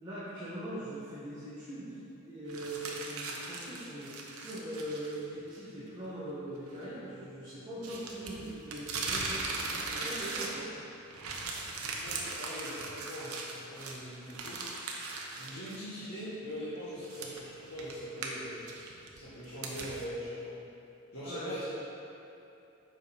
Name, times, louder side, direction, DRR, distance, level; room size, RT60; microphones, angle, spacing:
voice 1, 0.0-10.7 21.2-21.6, right 1 dB, 20° right, -12 dB, 1.4 m, -41 dB
sound 1, 2.5-5.2 5.5-5.6 7.8-10.8 11.1-15.8 16.2-16.3 17.0-20.0, right 3 dB, 80° right, 0.9 m, -39 dB
voice 2, 11.7-14.7 15.3-18.7 19.1-20.6 21.1-21.8, equal, 85° left, -12 dB, 1.6 m, -42 dB
7.6 x 5.1 x 4.4 m, 2.8 s
head